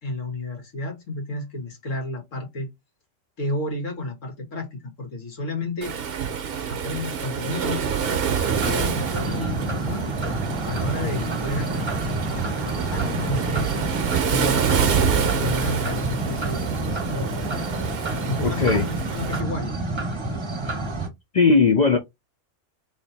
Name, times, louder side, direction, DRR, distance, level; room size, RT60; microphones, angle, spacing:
voice 1, 0.0-2.7 3.4-5.9 6.7-10.0 10.6-13.9 14.3-17.7 18.2-19.8, left 2 dB, 90° left, 1.9 m, -32 dB
Waves surf, 5.8-19.4, right 7 dB, 55° right, 0.9 m, -27 dB
sound 1, 8.5-21.1, right 2 dB, 25° right, 0.8 m, -28 dB
voice 2, 18.4-18.9 21.3-22.0, left 4 dB, 55° left, 0.5 m, -18 dB
3.3 x 2.7 x 4.1 m
omnidirectional pair, 1.3 m